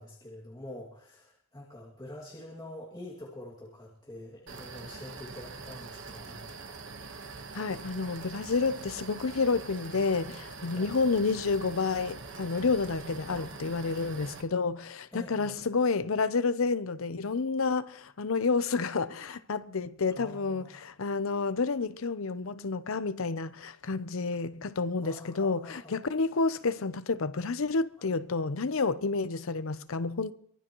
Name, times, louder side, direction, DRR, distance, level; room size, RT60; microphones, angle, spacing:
voice 1, 0.0-6.5 10.7-11.0 13.3-13.5 15.1-15.6 20.1-20.9 25.0-26.0 28.0-28.1, left 1 dB, 20° left, 2.3 m, -46 dB
sound 1, 4.5-14.4, right 4 dB, 60° right, 1.4 m, -44 dB
voice 2, 7.5-30.3, left 4 dB, 75° left, 0.7 m, -30 dB
23.5 x 18.0 x 3.1 m
head